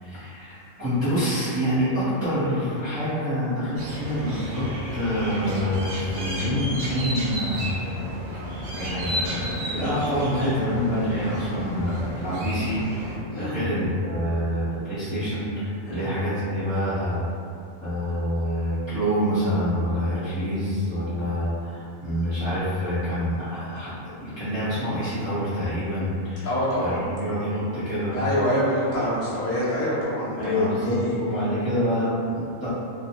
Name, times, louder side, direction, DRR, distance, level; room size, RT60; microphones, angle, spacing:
voice 1, 0.0-7.7 8.7-17.2 17.8-26.5 26.8-28.2 30.4-32.7, equal, 25° right, -15 dB, 0.7 m, -26 dB
sound 1, 3.8-13.2, equal, 55° right, 0.7 m, -32 dB
voice 2, 26.4-27.1 28.1-31.2, equal, 20° left, -10 dB, 0.3 m, -26 dB
2.2 x 2.2 x 2.8 m, 2.4 s
omnidirectional pair, 1.4 m